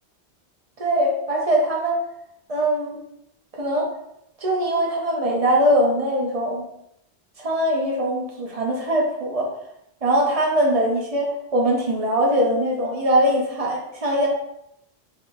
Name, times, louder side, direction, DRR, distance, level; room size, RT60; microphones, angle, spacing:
voice 1, 0.8-2.0 2.5-3.0 3.5-3.9 4.4-6.7 7.4-9.5 10.0-14.3, right 1 dB, 40° right, -1 dB, 0.7 m, -21 dB
3.8 x 2.8 x 2.6 m, 0.79 s
omnidirectional pair, 1.1 m